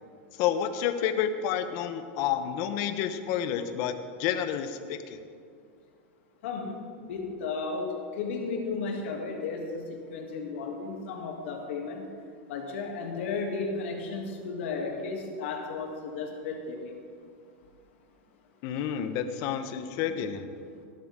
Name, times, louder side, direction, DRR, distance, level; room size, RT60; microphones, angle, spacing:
voice 1, 0.4-5.2 18.6-20.5, left 9 dB, 50° left, 9 dB, 0.9 m, -30 dB
voice 2, 6.4-6.8 7.1-12.0 12.5-16.8, left 4 dB, 70° left, 0 dB, 2.7 m, -34 dB
17.5 x 11.5 x 3.7 m, 2.3 s
supercardioid pair, 145°, 7 cm